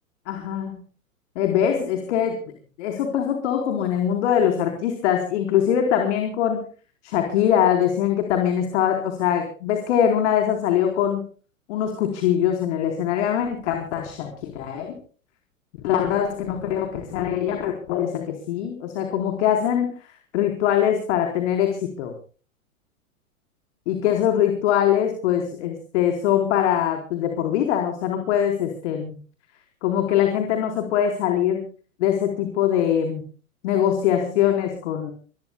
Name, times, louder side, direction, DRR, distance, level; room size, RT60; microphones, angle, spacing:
voice 1, 0.3-0.8 1.4-2.4 2.8-6.7 7.0-11.2 11.7-14.9 15.8-19.9 20.3-22.1 23.9-29.1 29.8-31.7 32.0-33.2 33.6-35.1, left 9 dB, 50° left, 4 dB, 4.3 m, -22 dB
25.0 x 22.5 x 2.3 m, 0.40 s
hypercardioid pair, 115°, 43 cm